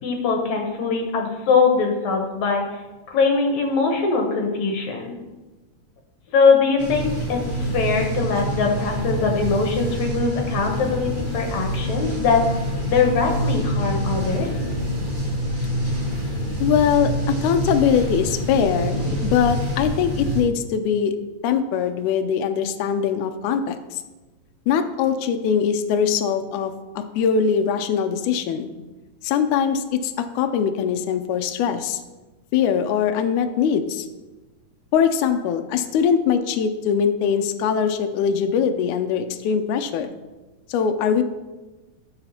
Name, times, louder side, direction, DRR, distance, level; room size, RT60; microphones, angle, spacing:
voice 1, 0.0-2.8 3.1-5.2 6.3-12.4 12.9-14.5, left 5 dB, 70° left, 2 dB, 2.0 m, -21 dB
sound 1, 6.8-20.4, equal, 80° right, 0.4 m, -26 dB
voice 2, 16.6-21.1 21.4-24.0 24.7-28.7 29.2-32.0 32.5-34.1 34.9-40.1 40.7-41.2, left 7 dB, 85° left, 7 dB, 1.7 m, -22 dB
12.5 x 6.9 x 2.8 m, 1.1 s
omnidirectional pair, 4.1 m